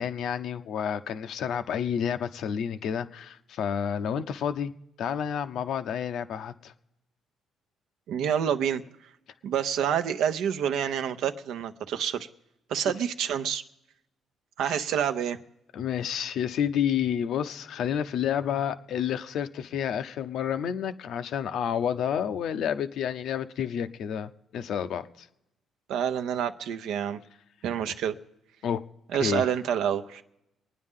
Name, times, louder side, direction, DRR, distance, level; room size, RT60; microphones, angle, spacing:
voice 1, 0.0-4.7 5.0-6.7 14.6-14.8 15.7-25.3 28.6-28.8 29.2-29.5, left 8 dB, 75° left, 0.7 m, -30 dB
voice 2, 8.1-8.8 9.4-12.3 12.7-13.6 14.6-15.4 25.9-27.2 27.6-28.2 29.1-30.2, right 9 dB, 85° right, 0.7 m, -28 dB
24.0 x 9.6 x 3.7 m
cardioid pair, 90°, 0 cm